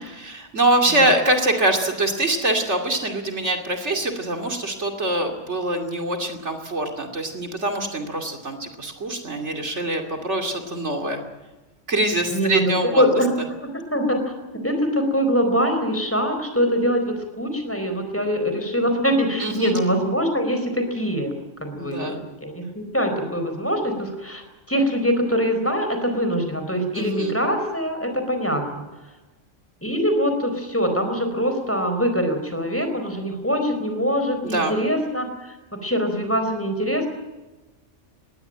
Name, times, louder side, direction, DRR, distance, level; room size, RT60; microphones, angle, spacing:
voice 1, 0.2-11.2 11.9-13.0 19.4-19.8 21.7-22.2 26.9-27.3 34.4-34.7, right 1 dB, 65° right, 4 dB, 2.9 m, -24 dB
voice 2, 12.3-13.3 13.6-21.3 21.6-28.8 29.8-37.1, equal, 10° left, 5 dB, 4.4 m, -23 dB
21.0 x 17.0 x 9.0 m, 1.1 s
omnidirectional pair, 1.3 m